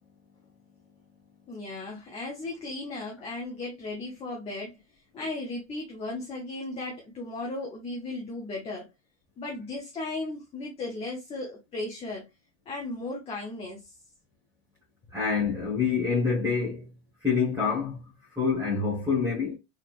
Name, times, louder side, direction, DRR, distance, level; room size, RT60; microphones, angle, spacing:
voice 1, 1.5-4.8 5.1-8.9 9.4-12.2 12.7-13.9, left 2 dB, 15° left, 0.7 m, -36 dB
voice 2, 15.1-16.8 17.2-18.0 18.4-19.6, left 5 dB, 5° right, 1.2 m, -26 dB
4.0 x 3.3 x 2.4 m
supercardioid pair, 155°, 39 cm